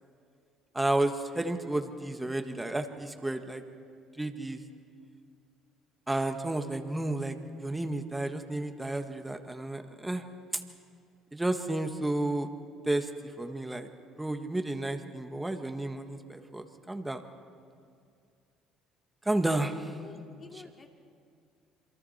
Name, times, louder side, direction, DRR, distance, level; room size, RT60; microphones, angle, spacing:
voice 1, 0.7-3.6 4.2-4.6 6.1-10.2 10.5-10.6 11.3-12.5 12.8-13.1 13.4-13.9 14.2-17.2 19.3-20.0 20.5-20.6, right 2 dB, 10° right, 6 dB, 1.6 m, -32 dB
voice 2, 19.9-20.9, left 5 dB, 35° left, 1 dB, 3.0 m, -50 dB
28.0 x 23.0 x 4.3 m, 2.3 s
supercardioid pair, 75°, 0 cm